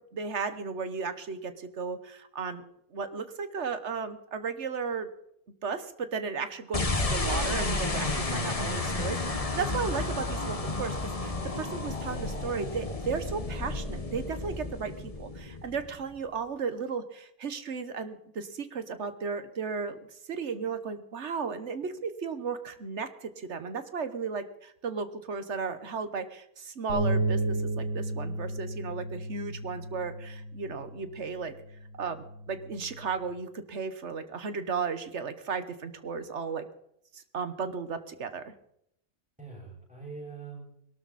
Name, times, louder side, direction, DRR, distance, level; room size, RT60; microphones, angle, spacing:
voice 1, 0.1-2.6 2.9-5.1 5.6-20.0 20.3-31.5 32.0-36.7 37.1-38.5, right 5 dB, 55° right, 11 dB, 1.4 m, -35 dB
sound 1, 6.7-16.1, left 2 dB, 25° left, 1.3 m, -32 dB
sound 2, 26.9-33.1, right 2 dB, 85° right, 6.6 m, -33 dB
voice 2, 39.4-40.7, right 4 dB, 5° right, -8 dB, 6.3 m, -44 dB
21.5 x 12.5 x 4.2 m, 0.75 s
omnidirectional pair, 1.5 m